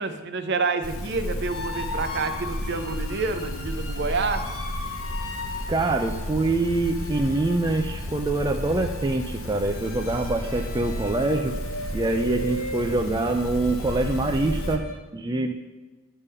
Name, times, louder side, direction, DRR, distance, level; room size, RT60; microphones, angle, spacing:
voice 1, 0.0-4.5, right 4 dB, 50° right, 8 dB, 0.7 m, -28 dB
sound 1, 0.8-14.8, left 1 dB, 65° left, 0.8 m, -33 dB
sound 2, 1.5-15.0, left 1 dB, 80° left, 1.4 m, -39 dB
voice 2, 5.7-11.6 11.9-14.8 15.1-15.5, right 2 dB, 20° right, 3 dB, 0.4 m, -25 dB
9.7 x 3.7 x 6.7 m, 1.2 s
head